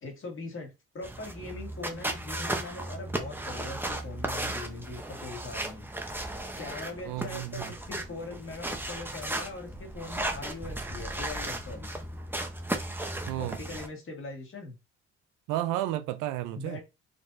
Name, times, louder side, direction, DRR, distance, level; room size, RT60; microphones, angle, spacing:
voice 1, 0.0-5.9 6.6-11.9 13.4-14.8 16.6-16.8, left 3 dB, 45° left, 1.9 m, -41 dB
sound 1, 1.0-13.9, right 1 dB, 5° right, 0.8 m, -35 dB
voice 2, 7.1-7.6 13.3-13.6 15.5-16.8, right 14 dB, 85° right, 0.5 m, -32 dB
4.0 x 3.2 x 2.6 m
supercardioid pair, 65°, 30 cm